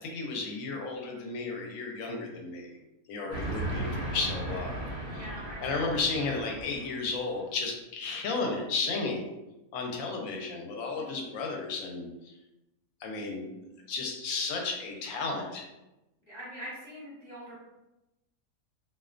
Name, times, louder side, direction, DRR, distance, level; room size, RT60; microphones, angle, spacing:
voice 1, 0.0-2.8 3.1-4.8 5.1-5.3 5.6-9.3 9.7-12.3 13.0-13.6 13.9-15.6, left 3 dB, 70° left, 1 dB, 0.9 m, -33 dB
Train, 3.3-7.2, right 1 dB, 80° right, 0.4 m, -36 dB
voice 2, 5.0-6.4 11.0-11.3 16.2-17.6, equal, 20° left, -10 dB, 0.9 m, -44 dB
2.4 x 2.2 x 2.4 m, 0.95 s
omnidirectional pair, 1.6 m